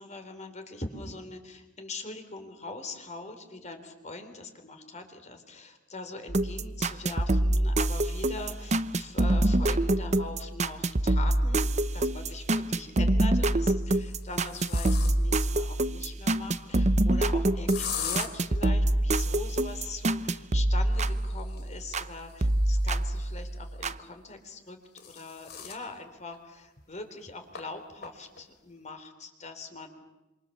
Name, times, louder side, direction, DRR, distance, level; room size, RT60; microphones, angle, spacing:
voice 1, 0.0-24.8 25.0-29.9, left 3 dB, 35° left, 7 dB, 3.6 m, -42 dB
sound 1, 6.3-22.1 22.4-24.0, right 1 dB, 35° right, 0.8 m, -26 dB
sound 2, 11.3-11.4 12.8-13.3 13.9-15.4 17.7-18.3 20.9-23.5 24.5-25.9 26.3-26.4 26.8-26.9 27.5-27.6 28.0-28.4, left 8 dB, 55° left, 3.2 m, -40 dB
27.0 x 26.0 x 7.3 m, 1.0 s
head